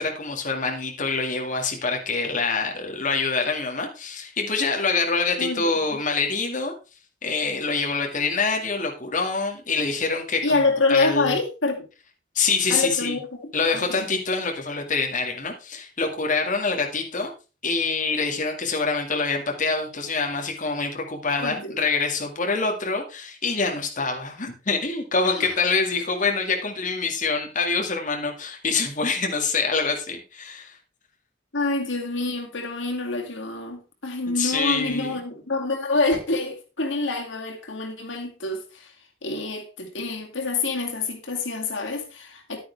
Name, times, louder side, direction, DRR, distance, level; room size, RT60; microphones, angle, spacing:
voice 1, 0.0-6.7 7.2-10.6 10.9-11.4 12.4-13.2 13.5-17.3 17.6-30.8 34.3-35.1, left 4 dB, 45° left, 2.1 m, -25 dB
voice 2, 5.4-6.0 10.4-11.9 12.7-13.3 13.7-14.0 21.3-21.8 25.4-25.5 31.5-38.9 39.2-42.6, left 3 dB, 90° left, 2.4 m, -26 dB
11.0 x 9.3 x 3.4 m
head